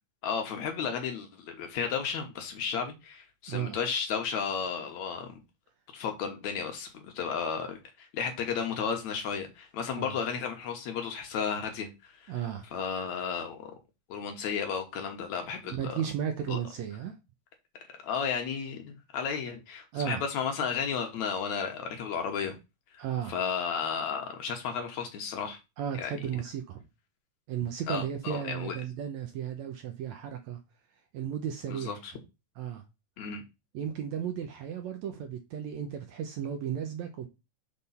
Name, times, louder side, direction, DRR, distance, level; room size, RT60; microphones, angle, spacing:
voice 1, 0.2-5.4 5.9-12.3 12.7-13.7 14.1-16.0 16.5-16.6 18.0-22.5 22.9-25.6 26.0-26.1 27.9-28.8 31.7-32.1 33.2-33.4, left 6 dB, 70° left, 2.1 m, -33 dB
voice 2, 3.5-3.8 10.0-10.2 12.3-12.7 15.7-17.1 19.9-20.2 23.0-23.3 25.8-26.8 27.5-30.6 31.1-32.0 32.6-32.8 33.7-37.3, right 9 dB, 75° right, 1.8 m, -34 dB
6.5 x 3.7 x 5.4 m
omnidirectional pair, 3.9 m